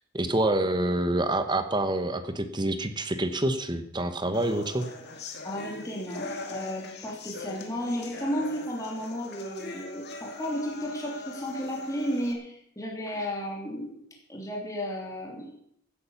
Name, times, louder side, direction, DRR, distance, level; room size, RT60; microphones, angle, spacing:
voice 1, 0.1-4.9, right 1 dB, 20° right, 10 dB, 1.0 m, -27 dB
sound 1, 4.3-12.3, left 3 dB, 50° left, 2.2 m, -41 dB
voice 2, 5.4-14.0 14.3-15.6, equal, 15° left, -2 dB, 3.1 m, -33 dB
16.0 x 8.9 x 7.1 m, 0.72 s
head